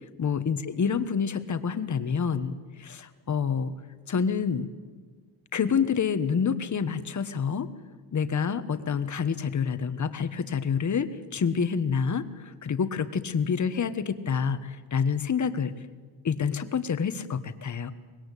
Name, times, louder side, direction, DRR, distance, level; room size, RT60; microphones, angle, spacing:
voice 1, 0.2-3.7 4.1-4.7 5.5-7.7 8.1-15.7 16.2-17.9, left 6 dB, 45° left, 11 dB, 1.4 m, -28 dB
24.5 x 21.0 x 8.4 m, 1.5 s
wide cardioid pair, 140°, 39 cm